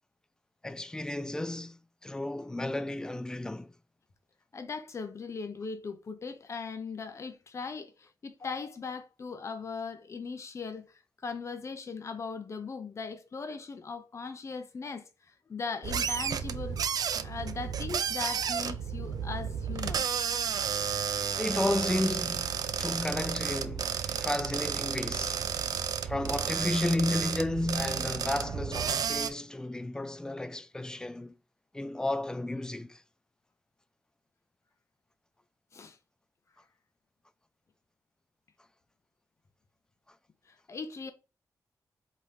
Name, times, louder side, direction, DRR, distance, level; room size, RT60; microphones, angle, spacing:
voice 1, 0.6-3.7 21.4-25.7 26.0-31.4 31.7-33.0, left 1 dB, 10° left, 0.4 m, -33 dB
voice 2, 4.5-16.8 17.2-20.1 35.7-36.0 40.5-41.1, left 4 dB, 45° left, 0.7 m, -39 dB
sound 1, 15.8-29.3, right 7 dB, 70° right, 0.4 m, -32 dB
4.1 x 3.1 x 3.4 m
wide cardioid pair, 100°, 7 cm